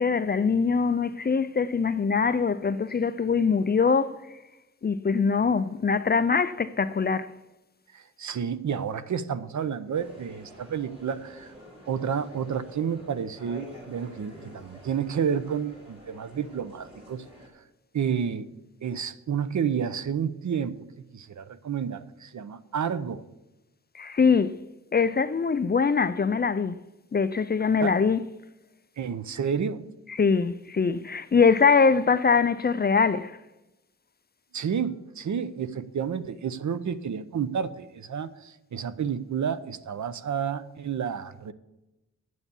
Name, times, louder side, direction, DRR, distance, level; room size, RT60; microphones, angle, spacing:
voice 1, 0.0-4.2 4.8-7.3 23.9-24.5 24.9-26.8 27.1-28.2 30.2-33.4, left 5 dB, 35° left, 0.4 m, -23 dB
voice 2, 7.9-11.5 11.9-17.2 17.9-18.5 18.8-20.9 21.1-23.2 27.8-27.9 29.0-29.9 34.5-41.5, right 7 dB, 75° right, 0.7 m, -30 dB
sound 1, 9.9-17.5, equal, 20° right, 3.8 m, -48 dB
9.4 x 8.1 x 7.0 m
wide cardioid pair, 130°, 29 cm